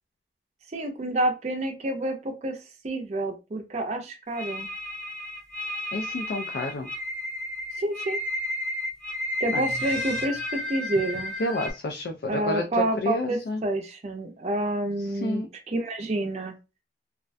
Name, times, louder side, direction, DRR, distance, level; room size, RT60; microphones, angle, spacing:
voice 1, 0.7-2.6 2.8-4.7 7.8-8.2 9.4-11.4 12.3-15.4 15.7-16.6, right 2 dB, 40° right, 3 dB, 0.4 m, -28 dB
sound 1, 4.3-11.7, left 1 dB, 5° left, 0.6 m, -32 dB
voice 2, 5.9-6.9 9.5-9.6 11.4-12.6 13.0-13.6 15.1-15.5, left 2 dB, 65° left, 3 dB, 0.3 m, -29 dB
2.3 x 2.2 x 2.5 m, 0.27 s
head